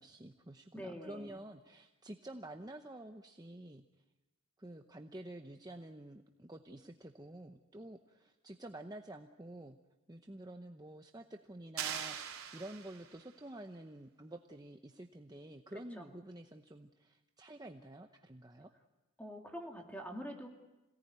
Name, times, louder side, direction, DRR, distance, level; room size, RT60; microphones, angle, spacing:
voice 1, 0.0-3.8 4.6-9.8 10.1-18.7, right 1 dB, 15° right, 5 dB, 0.8 m, -49 dB
voice 2, 0.7-1.4 16.0-16.2 19.2-20.5, equal, 5° left, 2 dB, 2.6 m, -45 dB
sound 1, 11.8-13.3, right 8 dB, 80° right, 3.5 m, -41 dB
27.0 x 18.0 x 9.6 m, 1.1 s
head